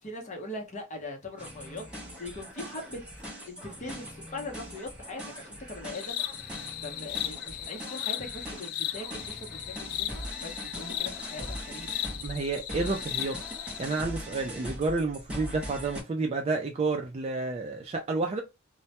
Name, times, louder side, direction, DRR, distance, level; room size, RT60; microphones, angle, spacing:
voice 1, 0.0-3.0 3.5-6.2 6.8-11.9, left 2 dB, 35° left, 0.7 m, -41 dB
sound 1, 1.4-16.0, equal, 5° right, 0.7 m, -41 dB
sound 2, 5.9-14.0, left 13 dB, 85° left, 0.3 m, -36 dB
voice 2, 12.2-18.4, right 3 dB, 30° right, 0.3 m, -30 dB
2.1 x 2.1 x 2.7 m
head